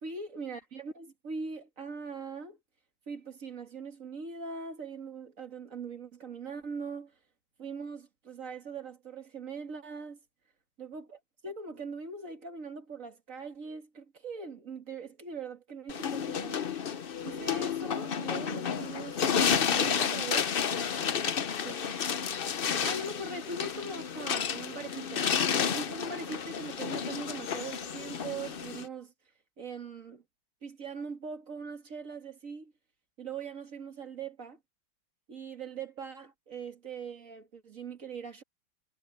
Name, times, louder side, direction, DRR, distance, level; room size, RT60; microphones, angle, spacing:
voice 1, 0.0-2.6 3.1-7.2 7.6-10.2 10.8-16.7 17.2-20.5 21.6-21.9 22.8-25.3 25.7-29.1 29.6-30.2 30.6-32.7 33.2-34.6 35.3-38.4, right 4 dB, 45° right, 2.3 m, -41 dB
sound 1, 15.9-28.9, left 7 dB, 80° left, 0.5 m, -31 dB
omnidirectional pair, 2.1 m